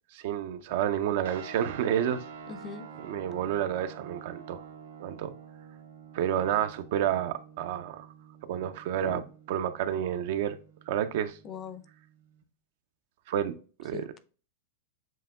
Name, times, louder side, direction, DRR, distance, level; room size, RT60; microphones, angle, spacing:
voice 1, 0.2-2.2 3.1-4.6 5.0-5.3 6.1-8.1 8.5-9.2 9.5-10.6 10.9-11.4 13.3-13.5 13.8-14.0, right 10 dB, 60° right, 0.4 m, -29 dB
sound 1, 1.2-12.4, right 6 dB, 85° right, 0.8 m, -48 dB
voice 2, 2.5-2.9 9.0-9.2 11.4-11.8 13.9-14.2, left 6 dB, 30° left, 0.5 m, -40 dB
7.3 x 2.8 x 2.3 m
hypercardioid pair, 120°, 0 cm